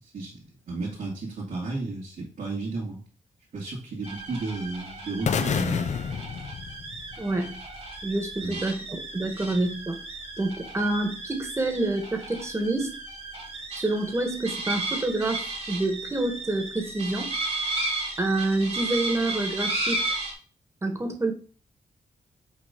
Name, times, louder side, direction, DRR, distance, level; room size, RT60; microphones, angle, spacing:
voice 1, 0.0-3.0 3.5-6.0 8.4-8.6, right 3 dB, 75° right, -6 dB, 2.3 m, -33 dB
sound 1, 4.0-20.3, right 2 dB, 50° right, 2.1 m, -34 dB
sound 2, 5.3-7.4, left 6 dB, 55° left, 0.6 m, -28 dB
voice 2, 7.2-7.6 8.0-8.8 9.1-10.0 10.4-12.9 13.7-17.3 18.2-20.0 20.8-21.3, right 2 dB, 20° right, 5 dB, 1.5 m, -27 dB
5.8 x 4.0 x 5.2 m, 0.40 s
cardioid pair, 90°, 14 cm